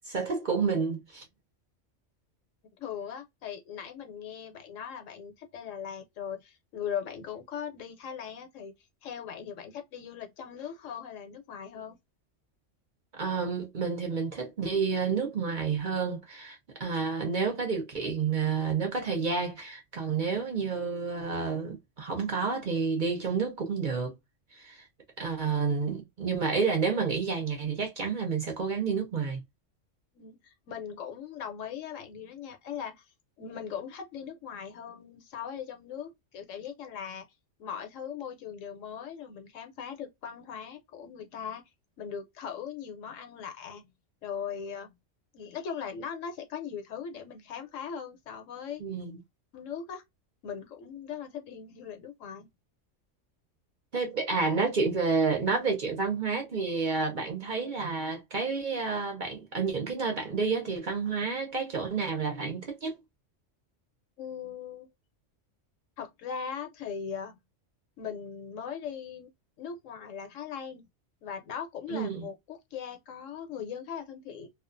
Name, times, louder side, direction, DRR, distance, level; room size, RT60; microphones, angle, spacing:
voice 1, 0.1-1.2 13.1-24.1 24.5-24.8 25.2-29.4 48.8-49.2 53.9-62.9 71.9-72.2, right 5 dB, 50° right, 0.7 m, -30 dB
voice 2, 2.8-8.7 9.0-12.0 25.4-25.7 30.1-33.0 33.4-37.2 37.6-41.6 42.0-43.9 44.2-44.9 45.3-48.8 49.5-50.0 50.4-52.5 64.2-64.9 66.0-67.4 68.0-69.3 69.6-70.9 71.2-74.5, left 7 dB, 80° left, 1.1 m, -39 dB
2.4 x 2.3 x 2.4 m
omnidirectional pair, 1.3 m